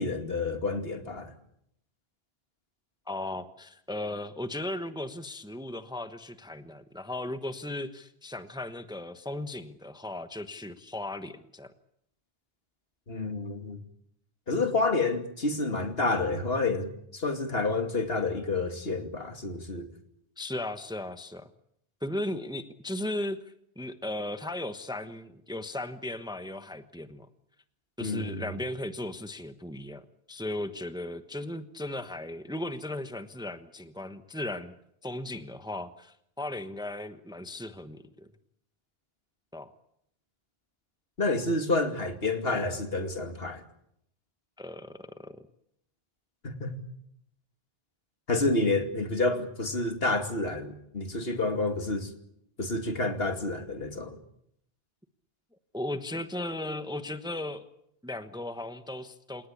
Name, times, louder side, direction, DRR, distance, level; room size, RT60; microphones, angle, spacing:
voice 1, 0.0-1.3 13.1-13.8 14.5-19.9 28.0-28.4 41.2-43.6 46.4-46.8 48.3-52.1 52.6-54.2, left 3 dB, 65° left, 2.8 m, -29 dB
voice 2, 3.1-11.7 20.4-21.5 22.0-23.4 23.8-27.3 28.0-34.7 35.0-38.3 39.5-39.7 44.6-45.5 55.7-57.6 58.0-59.5, left 1 dB, 5° right, 1.1 m, -36 dB
28.5 x 18.5 x 8.6 m
omnidirectional pair, 1.1 m